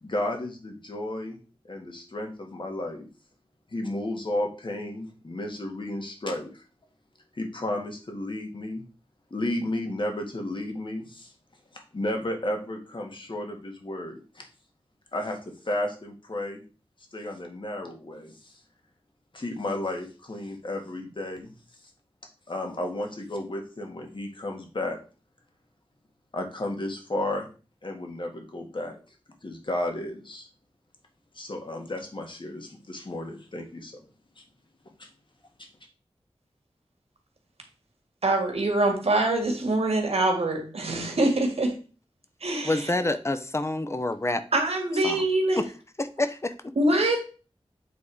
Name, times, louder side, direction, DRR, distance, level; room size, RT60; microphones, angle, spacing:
voice 1, 0.0-1.4 1.7-3.1 3.7-6.6 7.4-8.8 9.3-11.3 11.7-14.5 15.1-15.4 15.6-16.6 17.1-18.6 19.3-21.5 22.5-25.0 26.3-27.5 27.8-29.0 29.4-30.5 31.3-33.9 35.0-35.1, left 1 dB, 55° left, 3 dB, 1.8 m, -33 dB
voice 2, 38.2-41.8 42.4-42.9 44.5-45.6 46.8-47.2, right 2 dB, 85° right, 4 dB, 1.8 m, -24 dB
voice 3, 42.6-44.4 45.0-45.2 46.0-46.7, left 2 dB, 25° left, 10 dB, 0.7 m, -27 dB
8.5 x 3.6 x 4.8 m, 0.36 s
wide cardioid pair, 75°, 10 cm